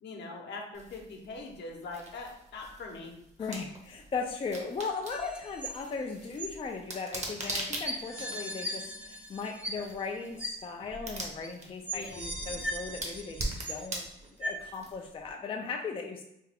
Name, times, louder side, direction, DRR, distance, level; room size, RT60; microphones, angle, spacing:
voice 1, 0.0-3.1 3.4-3.5 11.9-12.3, left 3 dB, 65° left, 1 dB, 0.8 m, -42 dB
sound 1, 0.7-15.3, right 2 dB, 35° right, 0.9 m, -43 dB
voice 2, 3.4-14.1 14.4-16.2, left 4 dB, 25° left, 2 dB, 0.4 m, -37 dB
sound 2, 5.1-6.0 6.4-6.5 7.4-7.5 7.8-10.1 10.4-10.5 11.4-11.5 11.9-14.0 14.4-14.5, equal, 5° right, 0.7 m, -38 dB
3.3 x 2.4 x 3.4 m, 0.82 s
cardioid pair, 90°, 20 cm